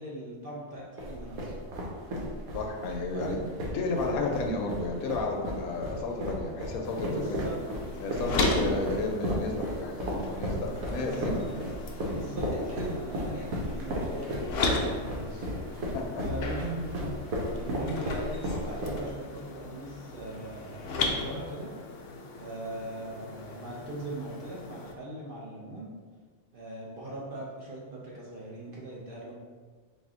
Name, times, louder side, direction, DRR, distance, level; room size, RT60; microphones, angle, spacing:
voice 1, 0.0-1.5 3.1-3.5 4.1-4.5 7.0-7.6 8.1-8.8 11.0-11.5 11.7-11.8 12.1-21.7 22.4-25.9 26.5-29.3, right 1 dB, 50° right, -5 dB, 0.7 m, -40 dB
sound 1, 1.0-19.3, equal, 85° right, 1.3 m, -34 dB
voice 2, 2.5-3.4 3.7-7.4 8.0-11.4 12.0-12.2 15.9-16.3, left 3 dB, 85° left, 2 dB, 1.1 m, -32 dB
sound 2, 6.8-24.9, left 3 dB, 65° left, 0.6 m, -36 dB
sound 3, 16.2-18.8, equal, ahead, 0.4 m, -43 dB
4.1 x 2.5 x 3.6 m, 1.5 s
omnidirectional pair, 1.5 m